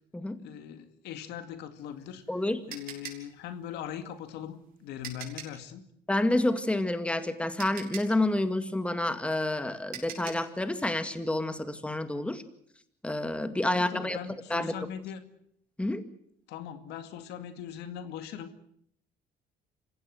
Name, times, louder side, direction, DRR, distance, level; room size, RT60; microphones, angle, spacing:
voice 1, 0.4-2.2 2.7-5.9 13.7-15.2 16.5-18.6, left 9 dB, 85° left, 9 dB, 2.3 m, -40 dB
sound 1, 1.8-5.7 7.1-7.2 7.6-10.5, right 7 dB, 55° right, 6.5 m, -44 dB
voice 2, 2.3-2.6 6.1-12.4 13.0-14.2 14.5-14.7 15.8-16.0, left 1 dB, 5° left, 10 dB, 2.0 m, -29 dB
27.0 x 16.5 x 7.8 m, 0.69 s
cardioid pair, 110°, 17 cm